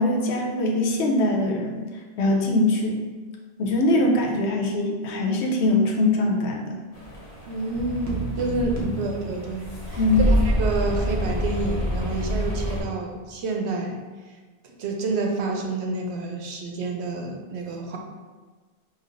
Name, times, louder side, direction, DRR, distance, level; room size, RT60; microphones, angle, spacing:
voice 1, 0.0-1.8 2.2-3.0 3.6-6.7 8.8-9.0 10.0-10.3, left 2 dB, 90° left, 0 dB, 0.9 m, -22 dB
sound 1, 6.9-12.8, equal, 40° left, 0.7 m, -27 dB
voice 2, 7.5-10.0 10.3-14.0 14.6-18.0, right 3 dB, 85° right, 2 dB, 0.9 m, -29 dB
sound 2, 7.8-10.0, right 3 dB, 50° right, 0.8 m, -34 dB
5.1 x 2.4 x 2.5 m, 1.4 s
omnidirectional pair, 1.1 m